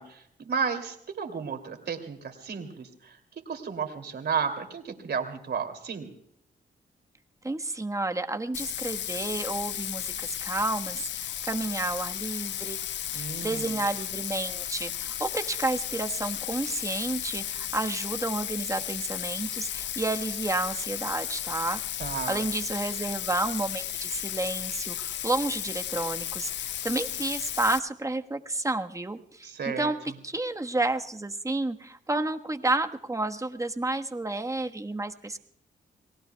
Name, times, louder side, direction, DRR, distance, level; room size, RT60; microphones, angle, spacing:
voice 1, 0.0-3.1 3.5-6.1 13.1-13.7 22.0-22.4 29.4-29.9, right 6 dB, 65° right, 6 dB, 2.8 m, -33 dB
voice 2, 7.4-12.8 13.1-21.8 22.3-30.0 30.2-35.4, right 2 dB, 15° right, 6 dB, 1.3 m, -31 dB
Bathtub (filling or washing), 8.5-27.8, left 11 dB, 80° left, 0.5 m, -34 dB
29.5 x 19.0 x 2.3 m, 0.71 s
cardioid pair, 60°, 18 cm